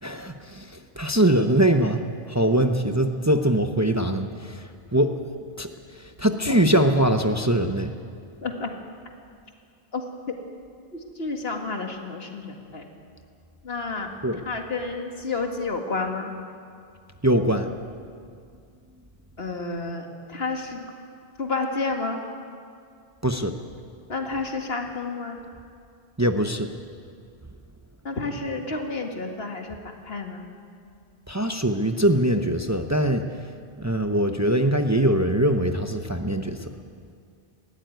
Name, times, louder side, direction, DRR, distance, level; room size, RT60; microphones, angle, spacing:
voice 1, 0.0-2.0 2.3-5.2 5.6-7.9 14.2-14.4 17.2-17.7 23.2-23.6 26.2-26.7 31.3-33.3 33.8-36.7, right 1 dB, 20° right, 6 dB, 0.8 m, -22 dB
voice 2, 8.4-8.7 9.9-10.0 10.9-12.9 13.6-14.1 14.5-16.3 19.4-20.9 21.4-22.2 24.1-25.4 28.0-30.5, left 3 dB, 75° left, 3 dB, 2.1 m, -30 dB
20.0 x 15.0 x 9.3 m, 2.3 s
omnidirectional pair, 1.0 m